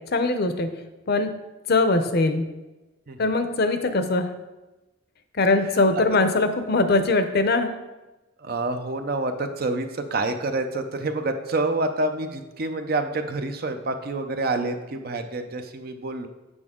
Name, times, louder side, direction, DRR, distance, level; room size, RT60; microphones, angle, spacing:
voice 1, 0.1-0.7 1.1-1.3 1.7-2.5 3.2-4.3 5.4-7.7, left 3 dB, 55° left, 9 dB, 0.7 m, -21 dB
voice 2, 8.4-16.3, right 2 dB, 50° right, 7 dB, 0.6 m, -27 dB
8.0 x 6.0 x 3.7 m, 1.1 s
head